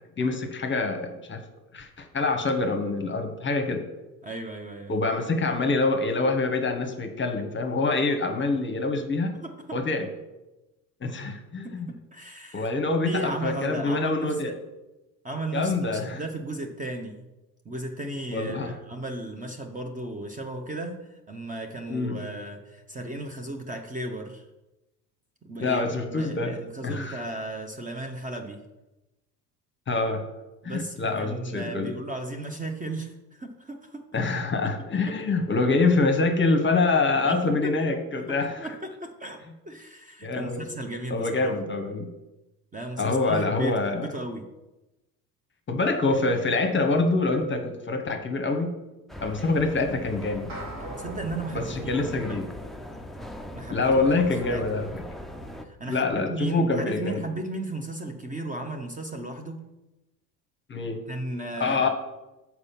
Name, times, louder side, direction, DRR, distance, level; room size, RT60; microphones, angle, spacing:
voice 1, 0.2-1.4 1.7-3.8 4.9-9.4 9.7-10.1 11.0-11.9 12.5-14.5 15.5-16.2 18.3-18.7 21.9-22.2 25.6-26.6 26.8-27.2 29.9-30.2 30.6-32.0 34.1-38.7 40.2-40.7 41.1-42.1 43.0-44.1 45.7-48.7 49.2-50.6 51.5-52.5 53.7-55.0 55.9-57.2 60.7-61.0 61.6-61.9, left 3 dB, 25° left, 6 dB, 1.0 m, -25 dB
voice 2, 4.2-4.9 9.4-9.8 11.6-12.7 13.0-14.6 15.2-17.3 17.6-24.5 25.4-28.6 30.6-34.0 35.1-35.2 37.2-37.7 38.6-39.4 39.6-41.6 42.7-44.5 50.8-52.4 53.5-54.0 54.4-54.6 55.6-59.6 61.1-61.9, right 2 dB, 15° right, 4 dB, 0.8 m, -35 dB
sound 1, 49.1-55.6, left 1 dB, ahead, 0.4 m, -40 dB
sound 2, 50.5-53.0, right 2 dB, 65° right, 2.3 m, -42 dB
6.6 x 4.6 x 5.7 m, 1.0 s
figure-of-eight pair, 60°, 49 cm